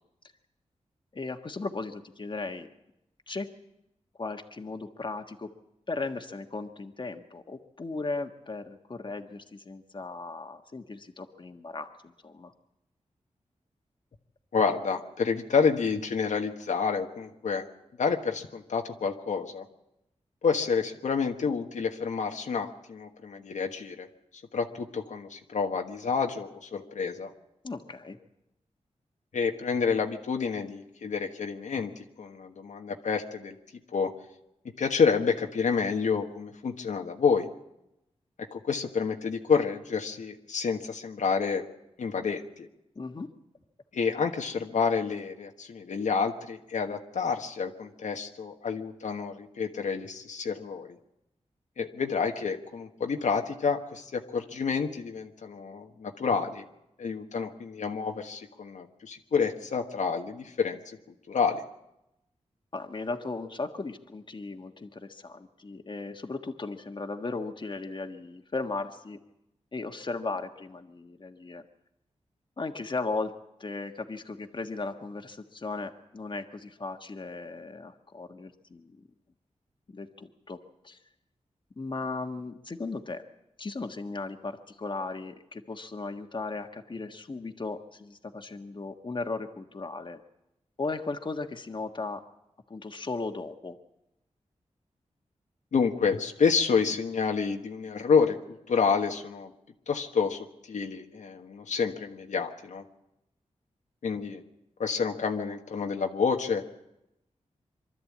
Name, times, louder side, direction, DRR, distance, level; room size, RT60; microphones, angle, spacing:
voice 1, 1.1-2.7 3.3-3.5 4.2-5.5 5.9-12.5 27.6-28.2 42.9-43.3 62.7-69.2 69.7-71.6 72.6-73.3 73.6-79.0 79.9-80.6 80.8-81.0 81.8-83.2 83.6-90.2 90.8-92.2 92.7-93.8, left 3 dB, 40° left, 5 dB, 1.5 m, -36 dB
voice 2, 14.5-17.6 18.0-19.6 20.4-24.1 24.5-27.3 29.3-33.6 33.9-34.1 34.8-37.5 38.4-41.6 42.0-42.7 43.9-50.9 51.8-56.6 57.0-61.0 61.3-61.6 95.7-98.4 98.7-99.5 99.9-102.8 104.0-104.4 104.8-106.6, left 5 dB, 90° left, 3 dB, 1.4 m, -29 dB
23.5 x 13.0 x 8.6 m, 0.89 s
wide cardioid pair, 75°, 12 cm